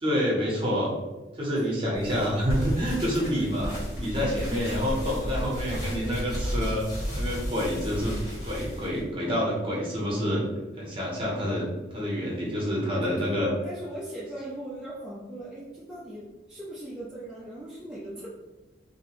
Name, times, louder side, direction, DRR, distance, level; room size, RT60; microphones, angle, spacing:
voice 1, 0.0-0.9 1.3-6.9 7.1-8.2 8.4-10.4 10.8-11.7 11.9-13.5, equal, 30° right, -4 dB, 0.7 m, -28 dB
sound 1, 1.9-9.0, equal, 60° left, 1.5 m, -33 dB
voice 2, 4.3-4.8 12.2-12.4 13.0-18.3, right 1 dB, 5° right, -9 dB, 0.3 m, -39 dB
2.6 x 2.0 x 2.8 m, 1.1 s
head